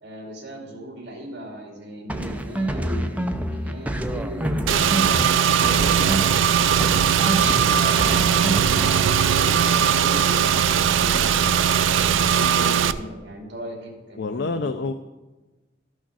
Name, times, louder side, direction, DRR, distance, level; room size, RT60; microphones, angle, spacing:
voice 1, 0.0-5.1 5.8-8.8 9.3-11.6 11.8-14.7, equal, 60° right, 0 dB, 2.4 m, -38 dB
sound 1, 2.1-6.5 6.8-9.1, right 1 dB, 10° right, 0.5 m, -28 dB
Car / Engine, 4.7-12.9, right 8 dB, 90° right, 0.4 m, -19 dB
voice 2, 14.2-14.9, left 3 dB, 60° left, 8 dB, 0.5 m, -27 dB
12.0 x 6.4 x 6.1 m, 1.1 s
head